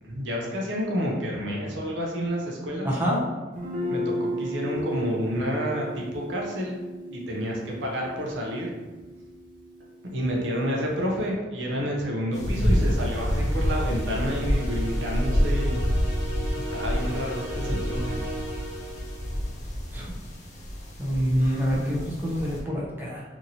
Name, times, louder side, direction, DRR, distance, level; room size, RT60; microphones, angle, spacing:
voice 1, 0.0-2.9 3.8-6.8 7.1-8.7 10.0-15.8 16.2-16.3 16.7-18.3, equal, 80° right, -1 dB, 0.6 m, -29 dB
voice 2, 2.8-3.2 19.9-20.1 21.0-23.2, equal, 10° right, -5 dB, 0.6 m, -26 dB
Guitar, 3.5-11.2, equal, 45° right, 0.7 m, -35 dB
sound 1, 12.3-22.6, equal, 40° left, 0.5 m, -28 dB
sound 2, 12.5-19.5, right 1 dB, 85° left, 1.0 m, -37 dB
2.9 x 2.6 x 2.6 m, 1.3 s
head